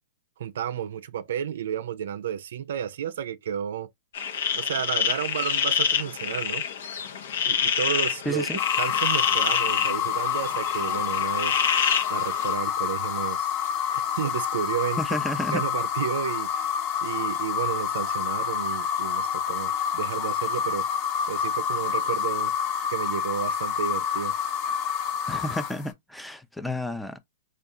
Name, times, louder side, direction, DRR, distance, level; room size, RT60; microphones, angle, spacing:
voice 1, 0.4-3.9 4.5-6.6 7.4-8.5 8.8-11.6 12.1-15.0 15.5-16.8 17.0-22.5 22.9-24.3, right 9 dB, 70° right, 0.4 m, -32 dB
sound 1, 4.1-12.5, left 7 dB, 70° left, 0.8 m, -27 dB
voice 2, 8.3-8.6 15.0-15.6 25.3-27.2, left 1 dB, 5° left, 0.5 m, -31 dB
sound 2, 8.6-25.9, left 8 dB, 40° left, 1.0 m, -28 dB
3.6 x 2.3 x 2.6 m
hypercardioid pair, 130°, 0 cm